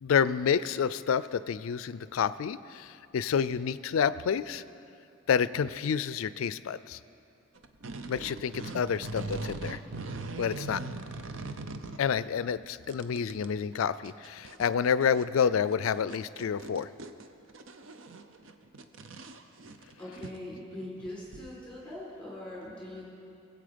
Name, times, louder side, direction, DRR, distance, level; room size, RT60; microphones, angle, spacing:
voice 1, 0.0-4.6 5.3-7.0 8.1-9.8 10.4-10.8 12.0-16.9, left 7 dB, 80° left, 16 dB, 0.4 m, -29 dB
sound 1, 7.5-12.2 12.6-13.5 13.7-13.8 14.0-21.5, right 3 dB, 65° right, 0.6 m, -41 dB
voice 2, 20.0-23.0, left 1 dB, 5° left, -6 dB, 4.0 m, -41 dB
20.0 x 8.1 x 5.1 m, 2.6 s
head